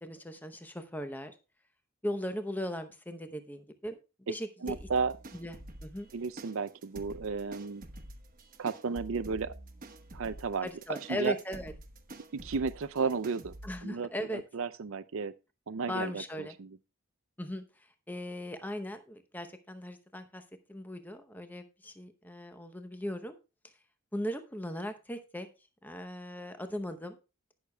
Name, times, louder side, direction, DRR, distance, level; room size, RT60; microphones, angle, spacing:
voice 1, 0.0-1.3 2.0-4.9 5.3-5.6 5.8-6.1 10.6-11.7 13.6-14.4 15.9-16.6 17.4-20.4 20.7-23.4 24.1-25.5 25.8-27.2, equal, 10° left, 0.7 m, -38 dB
voice 2, 4.6-5.1 6.1-7.8 8.6-9.6 10.1-10.7 11.1-11.4 12.4-13.5 13.8-15.3 15.7-16.7, right 5 dB, 65° right, 0.5 m, -33 dB
sound 1, 4.7-13.8, right 1 dB, 40° right, 1.1 m, -48 dB
19.0 x 6.5 x 2.2 m
head